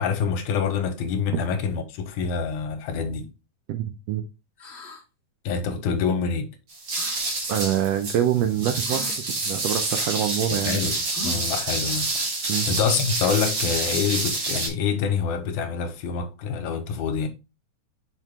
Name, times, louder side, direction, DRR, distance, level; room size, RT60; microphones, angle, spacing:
voice 1, 0.0-3.3 5.5-6.5 10.7-12.1 12.7-17.3, left 6 dB, 85° left, 2.3 m, -26 dB
voice 2, 3.7-4.2 7.5-10.8 12.5-12.7, right 10 dB, 80° right, 1.5 m, -25 dB
sound 1, 4.6-5.0 6.9-7.2 8.8-9.2 11.1-11.6, equal, 30° left, 1.3 m, -39 dB
sound 2, 6.7-14.7, right 2 dB, 45° right, 2.2 m, -28 dB
5.8 x 4.6 x 3.5 m
omnidirectional pair, 3.4 m